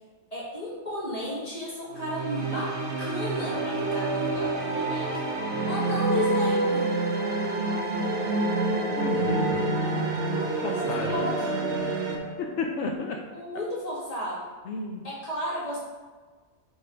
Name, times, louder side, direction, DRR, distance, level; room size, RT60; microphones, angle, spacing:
voice 1, 0.3-2.7 3.0-5.1 5.6-6.9 11.0-11.7 13.3-14.4 15.0-15.8, left 1 dB, 35° left, -7 dB, 2.2 m, -33 dB
sound 1, 1.9-12.2, right 3 dB, 85° right, 1.2 m, -29 dB
sound 2, 3.5-12.9, right 1 dB, 30° right, 0.9 m, -31 dB
voice 2, 9.0-9.8 10.3-11.2 12.2-13.2 14.6-15.0, left 4 dB, 85° left, 2 dB, 0.9 m, -33 dB
5.1 x 4.3 x 5.1 m, 1.4 s
omnidirectional pair, 1.2 m